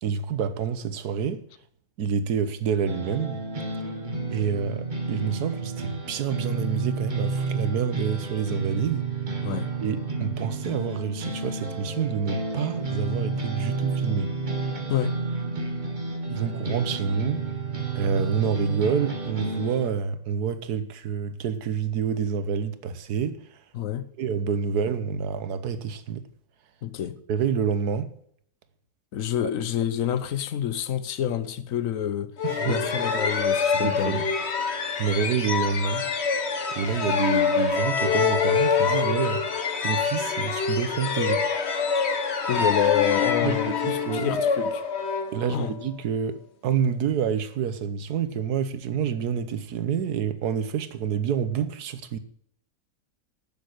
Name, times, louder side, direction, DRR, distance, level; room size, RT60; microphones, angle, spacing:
voice 1, 0.0-1.4 2.0-3.4 4.3-9.1 9.8-14.3 16.3-17.4 17.9-23.4 24.2-26.3 27.3-28.1 32.4-32.9 33.7-34.2 35.0-36.0 36.7-39.4 39.8-41.5 43.4-44.4 45.3-52.2, right 7 dB, 90° right, 1.5 m, -28 dB
sound 1, 2.9-19.9, right 3 dB, 30° right, 1.8 m, -31 dB
voice 2, 23.7-24.1 26.8-27.2 29.1-32.3 32.7-34.2 42.5-44.8 45.5-45.7, left 10 dB, 65° left, 1.2 m, -27 dB
sound 2, 32.4-45.9, left 5 dB, 45° left, 1.3 m, -25 dB
10.5 x 7.2 x 8.2 m
omnidirectional pair, 1.6 m